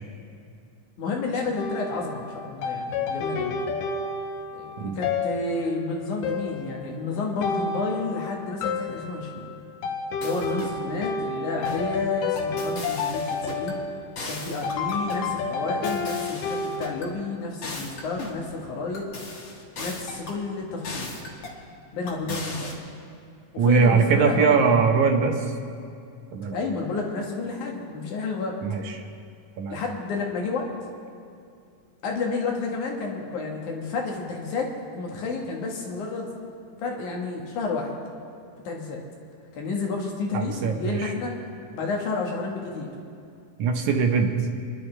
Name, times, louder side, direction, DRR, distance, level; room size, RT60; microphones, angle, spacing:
voice 1, 1.0-3.7 4.5-9.5 10.2-13.8 14.3-19.1 19.8-21.1 21.9-22.7 23.5-24.7 26.5-28.6 29.7-30.7 32.0-36.3 36.8-37.9 38.6-39.0 39.5-41.3 41.7-42.9, left 3 dB, 70° left, 0 dB, 2.9 m, -30 dB
sound 1, 1.6-16.8, left 4 dB, 85° left, 2.5 m, -30 dB
sound 2, 10.2-10.8 11.6-11.9 12.4-13.8 14.2-15.3 15.8-17.1 17.6-18.4 18.9-20.4 20.8-21.6 22.1-22.7, left 3 dB, 45° left, 1.8 m, -37 dB
voice 2, 23.6-25.3 26.3-26.6 28.6-28.8 29.6-29.8 40.3-41.0 43.6-44.3, right 5 dB, 70° right, 4 dB, 2.2 m, -21 dB
27.0 x 11.0 x 3.3 m, 2.5 s
omnidirectional pair, 3.7 m